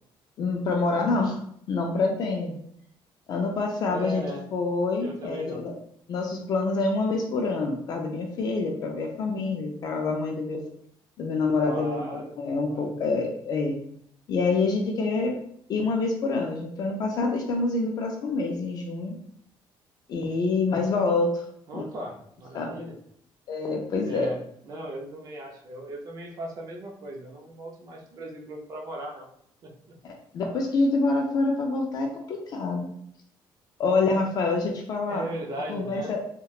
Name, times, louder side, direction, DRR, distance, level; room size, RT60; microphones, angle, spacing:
voice 1, 0.4-1.4 1.7-2.6 3.3-4.2 4.5-5.7 6.1-10.6 11.2-13.8 14.3-15.4 15.7-19.2 20.1-21.4 21.7-21.8 22.5-22.8 23.5-24.3 30.3-32.9 33.8-35.3 35.7-36.4, left 3 dB, 45° left, 2 dB, 0.3 m, -26 dB
voice 2, 3.9-4.4 5.0-5.6 11.6-12.3 12.6-12.9 21.7-23.0 24.0-29.3 29.6-29.9 35.1-36.1, right 1 dB, 40° right, 0 dB, 0.5 m, -37 dB
2.8 x 2.1 x 2.3 m, 0.67 s
cardioid pair, 170°, 9 cm